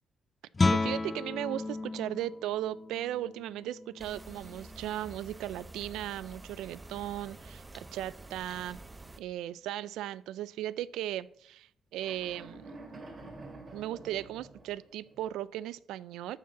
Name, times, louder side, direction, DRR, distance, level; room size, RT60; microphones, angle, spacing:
Guitar, 0.5-6.1, left 3 dB, 25° left, 0.6 m, -34 dB
voice 1, 0.7-8.8 9.2-12.7 13.7-16.4, right 13 dB, 90° right, 0.4 m, -37 dB
sound 1, 4.0-9.2, right 2 dB, 20° right, 0.7 m, -49 dB
sound 2, 12.0-15.3, right 2 dB, 45° right, 3.0 m, -48 dB
12.5 x 4.7 x 7.1 m
cardioid pair, 90°, 0 cm